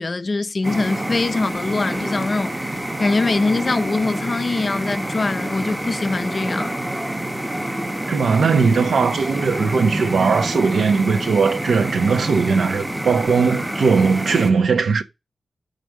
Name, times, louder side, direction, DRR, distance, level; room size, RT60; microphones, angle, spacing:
voice 1, 0.0-6.7, left 3 dB, 40° left, 0.5 m, -23 dB
sound 1, 0.6-14.5, right 1 dB, 10° right, 0.8 m, -27 dB
voice 2, 8.1-15.0, right 5 dB, 85° right, 1.0 m, -19 dB
5.3 x 5.1 x 6.3 m
wide cardioid pair, 130°, 0 cm